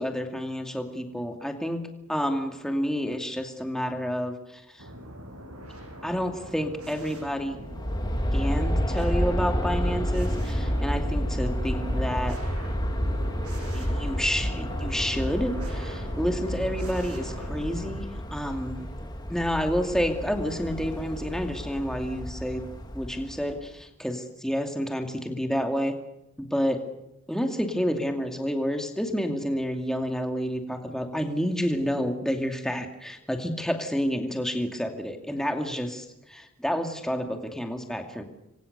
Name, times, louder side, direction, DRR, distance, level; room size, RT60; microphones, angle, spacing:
voice 1, 0.0-4.9 6.0-7.6 8.3-12.4 13.7-18.8 19.3-22.7 22.9-25.9 26.4-26.8 27.3-38.2, equal, ahead, 4 dB, 2.4 m, -29 dB
sound 1, 4.8-17.9, equal, 90° right, 7.9 m, -41 dB
Aircraft, 7.5-23.6, equal, 20° left, 2.1 m, -30 dB
27.5 x 24.0 x 6.8 m, 0.87 s
head